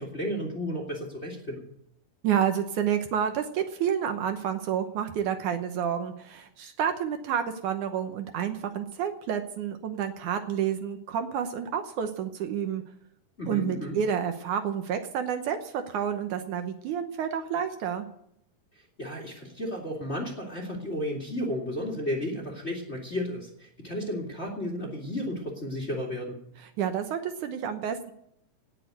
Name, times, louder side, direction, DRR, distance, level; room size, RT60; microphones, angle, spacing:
voice 1, 0.0-1.6 13.4-14.0 19.0-26.3, equal, 25° left, 0 dB, 1.9 m, -33 dB
voice 2, 2.2-12.8 13.5-18.1 26.6-28.1, right 8 dB, 70° right, 7 dB, 2.3 m, -29 dB
18.5 x 6.6 x 9.1 m, 0.74 s
omnidirectional pair, 3.9 m